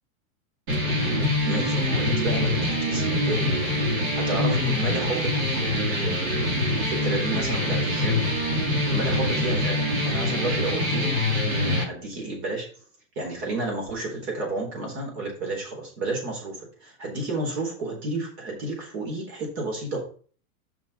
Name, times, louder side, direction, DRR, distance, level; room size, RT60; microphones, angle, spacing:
sound 1, 0.7-11.8, left 1 dB, 70° right, 3.4 m, -24 dB
voice 1, 1.4-3.5 4.1-8.3 8.9-11.1 11.6-12.6 13.2-20.0, right 2 dB, 45° right, 0 dB, 3.9 m, -31 dB
6.1 x 5.5 x 5.5 m, 0.42 s
supercardioid pair, 165°, 43 cm